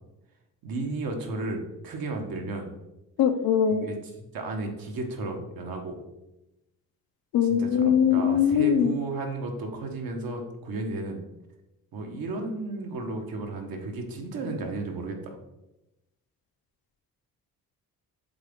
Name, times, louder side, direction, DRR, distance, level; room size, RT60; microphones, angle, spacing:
voice 1, 0.6-2.7 3.8-6.0 7.4-11.2 11.9-15.4, right 3 dB, 75° right, 2 dB, 1.3 m, -33 dB
voice 2, 3.2-3.9 7.3-8.9, left 8 dB, 90° left, 7 dB, 0.8 m, -21 dB
7.7 x 3.9 x 3.7 m, 0.94 s
cardioid pair, 105°, 36 cm